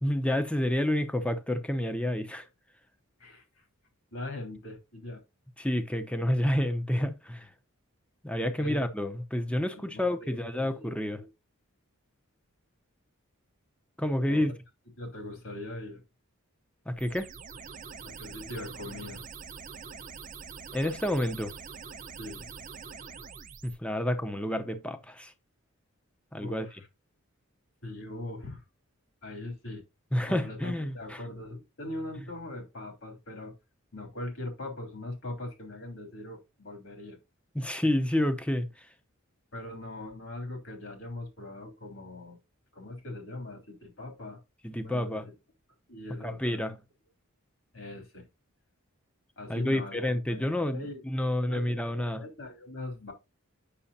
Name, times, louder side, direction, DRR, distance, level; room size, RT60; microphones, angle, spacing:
voice 1, 0.0-2.5 5.6-7.5 8.2-11.2 14.0-14.5 16.9-17.3 20.7-21.5 23.6-25.3 26.3-26.7 30.1-31.2 37.5-38.9 44.6-45.3 46.2-46.8 49.5-52.2, left 1 dB, 5° left, 0.7 m, -29 dB
voice 2, 3.2-3.6 4.1-5.2 8.6-9.1 9.7-11.3 14.2-14.5 15.0-16.0 18.0-19.2 22.2-22.5 26.4-26.9 27.8-28.6 29.2-29.8 30.3-33.5 33.9-37.2 39.5-42.4 42.7-44.4 44.8-45.3 45.9-46.6 47.7-48.2 49.4-53.1, left 2 dB, 60° left, 3.3 m, -41 dB
sound 1, 17.0-23.8, right 5 dB, 35° right, 0.8 m, -44 dB
8.5 x 6.2 x 2.7 m
head